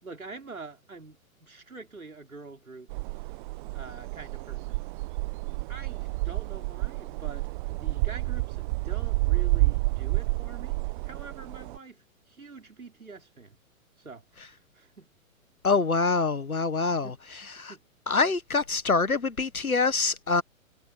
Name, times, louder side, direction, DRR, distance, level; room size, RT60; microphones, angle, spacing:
voice 1, 0.0-2.9 3.7-4.8 5.7-10.8 11.0-13.6 14.0-15.1 16.9-17.2 17.6-17.8, right 4 dB, 85° right, 5.5 m, -45 dB
sound 1, 2.9-11.8, right 23 dB, 35° right, 1.5 m, -30 dB
voice 2, 15.6-17.1 17.6-17.7 18.1-20.4, left 4 dB, 85° left, 1.7 m, -25 dB
figure-of-eight pair, 110°, 42 cm